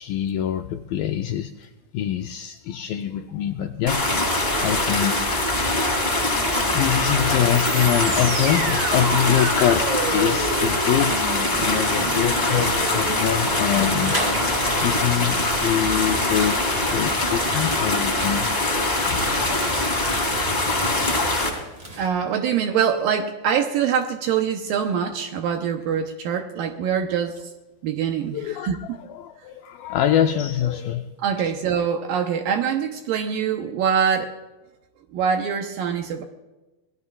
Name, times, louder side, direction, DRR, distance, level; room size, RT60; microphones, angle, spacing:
voice 1, 0.0-1.7 1.9-6.1 6.5-16.6 16.9-18.5 18.9-19.2 21.0-21.3 28.3-28.7 29.1-31.1 31.4-31.5, left 10 dB, 85° left, 5 dB, 2.0 m, -25 dB
sound 1, 3.9-21.5, left 2 dB, 10° left, 2.3 m, -23 dB
sound 2, 7.4-17.5, right 4 dB, 50° right, 3.4 m, -33 dB
sound 3, 10.6-22.1, right 1 dB, 20° right, 1.8 m, -38 dB
voice 2, 22.0-27.3 27.8-29.0 31.2-34.3 35.1-36.2, right 7 dB, 75° right, 5 dB, 2.2 m, -24 dB
26.0 x 19.5 x 2.4 m, 1.1 s
omnidirectional pair, 4.8 m